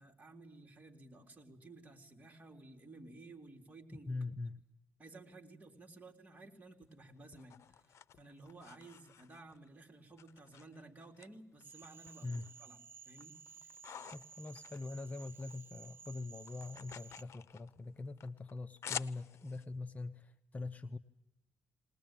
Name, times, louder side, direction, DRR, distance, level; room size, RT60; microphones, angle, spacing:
voice 1, 0.0-4.2 5.0-12.8 13.1-13.4, right 2 dB, 30° right, 3 dB, 3.7 m, -55 dB
voice 2, 3.9-4.6 12.2-12.5 14.1-21.0, left 3 dB, 30° left, 8 dB, 0.9 m, -43 dB
sound 1, 6.8-9.7 10.2-11.3 11.6-12.6 13.0-15.6 15.8-19.7, left 9 dB, 70° left, 0.8 m, -49 dB
Cricket / Frog, 11.6-17.2, right 6 dB, 50° right, 1.1 m, -55 dB
21.0 x 20.0 x 9.1 m, 0.91 s
cardioid pair, 90°, 5 cm